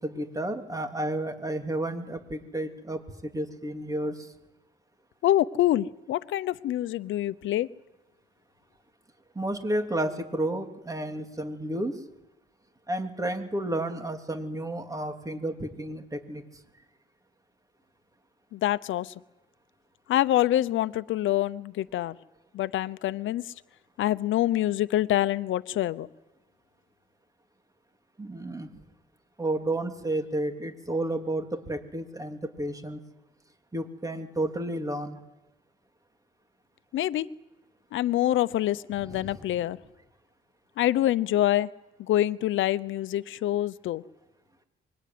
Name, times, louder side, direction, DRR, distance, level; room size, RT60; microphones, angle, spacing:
voice 1, 0.0-4.3 9.3-12.0 12.9-16.4 28.2-28.7 29.4-33.0 33.7-35.2 39.1-39.4, right 1 dB, 15° right, 6 dB, 3.2 m, -31 dB
voice 2, 5.2-7.7 18.5-19.2 20.1-22.2 22.5-23.5 24.0-26.1 36.9-37.3 37.9-39.8 40.8-41.7 42.0-44.0, left 13 dB, 75° left, 16 dB, 0.9 m, -26 dB
25.0 x 22.0 x 9.5 m, 1.0 s
cardioid pair, 90°, 20 cm